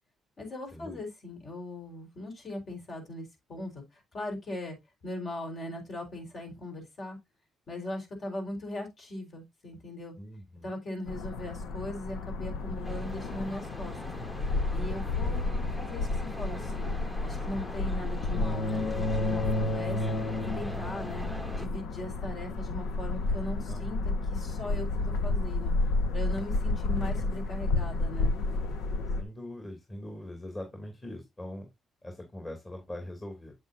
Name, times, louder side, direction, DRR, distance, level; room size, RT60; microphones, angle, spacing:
voice 1, 0.4-4.8 5.0-7.2 7.7-10.1 10.6-14.1 14.7-17.0 17.2-20.0 20.5-21.3 21.6-24.0 24.3-25.7 26.1-28.4, left 1 dB, 50° left, 4.3 m, -39 dB
voice 2, 10.2-10.7 15.2-15.4 15.7-15.8 23.6-23.8 29.2-31.7 32.0-33.5, left 1 dB, 25° left, 2.8 m, -42 dB
sound 1, 11.1-29.2, left 2 dB, 80° left, 1.2 m, -31 dB
sound 2, 12.8-21.7, equal, ahead, 0.9 m, -43 dB
8.0 x 8.0 x 2.6 m
cardioid pair, 90°, 0 cm